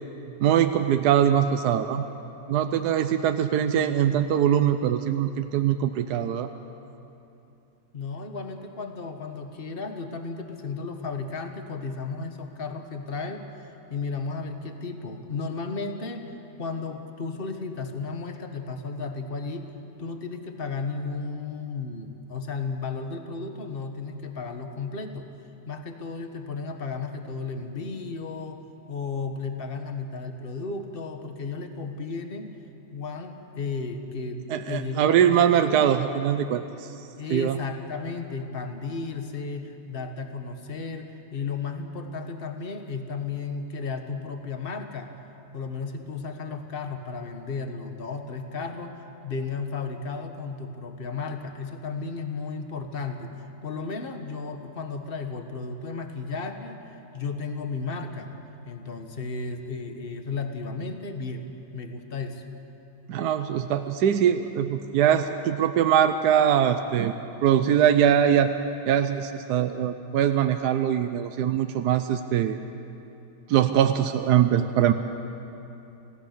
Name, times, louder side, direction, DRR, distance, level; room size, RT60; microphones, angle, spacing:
voice 1, 0.4-2.0 2.5-6.5 34.5-36.6 37.3-37.6 63.1-67.1 67.4-68.5 68.9-72.6 73.5-74.9, right 9 dB, 75° right, 8 dB, 1.2 m, -22 dB
voice 2, 7.9-16.3 16.6-19.7 20.0-25.3 25.7-28.6 28.9-32.5 32.9-35.9 37.2-45.1 45.5-48.9 49.2-58.3 58.6-61.5 61.7-62.4, left 4 dB, 35° left, 5 dB, 1.5 m, -34 dB
28.0 x 16.0 x 6.7 m, 2.9 s
omnidirectional pair, 1.8 m